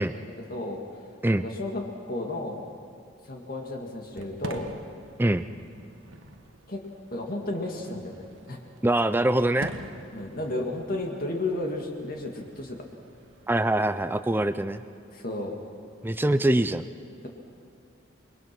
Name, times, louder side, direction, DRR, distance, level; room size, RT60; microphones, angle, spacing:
voice 1, 0.0-1.1 1.4-2.7 3.2-4.8 6.7-6.8 7.1-8.6 10.1-12.8 15.1-15.5, left 2 dB, 45° left, 1 dB, 2.1 m, -33 dB
Fireworks, 4.0-13.9, right 1 dB, 75° right, 1.5 m, -45 dB
voice 2, 8.8-9.7 13.5-14.8 16.0-16.8, right 1 dB, 10° right, 11 dB, 0.5 m, -23 dB
28.5 x 22.0 x 6.0 m, 2.3 s
head